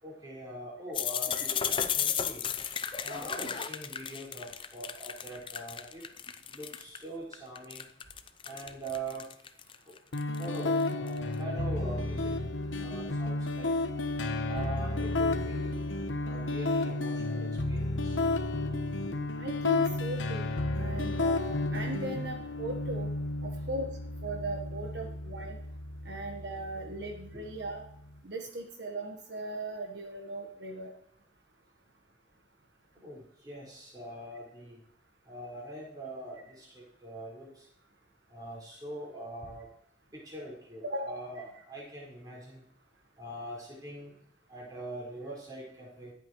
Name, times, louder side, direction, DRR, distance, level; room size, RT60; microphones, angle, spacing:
voice 1, 0.0-2.4 3.0-6.0 6.5-7.9 8.4-9.3 10.4-12.3 12.8-13.7 14.5-15.7 16.2-18.2 23.6-23.7 25.0-25.1 27.3-27.4 33.0-34.8 35.3-37.7 38.3-39.6 40.1-42.6 43.2-44.1 44.5-46.1, right 1 dB, 20° right, -5 dB, 4.9 m, -43 dB
sound 1, 0.9-7.0 7.3-11.2, left 8 dB, 25° left, 0.5 m, -34 dB
sound 2, 10.1-28.1, left 2 dB, 80° left, 1.0 m, -32 dB
voice 2, 19.4-20.5 20.8-23.1 23.7-23.9 24.2-25.6 26.0-27.8 28.2-30.9 40.8-41.5, right 2 dB, 60° right, 2 dB, 1.2 m, -38 dB
21.5 x 8.4 x 3.1 m, 0.72 s
head